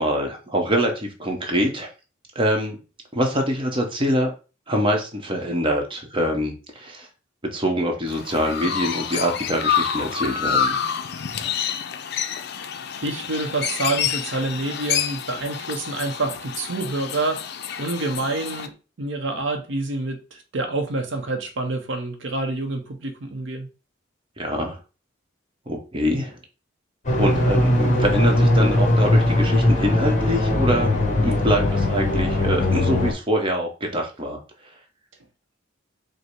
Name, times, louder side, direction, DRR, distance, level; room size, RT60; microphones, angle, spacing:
voice 1, 0.0-1.9 2.3-2.8 3.1-4.3 4.7-7.1 7.4-10.8 24.4-24.8 25.7-26.4 27.2-34.4, equal, 25° right, 0.8 m, -24 dB
Chirp tweet, 8.1-18.7, left 8 dB, 55° left, 0.4 m, -28 dB
voice 2, 13.0-17.5 17.8-23.7, right 2 dB, 70° right, 0.7 m, -27 dB
sound 1, 27.0-33.1, left 1 dB, 40° left, 1.0 m, -20 dB
5.1 x 2.1 x 4.5 m
head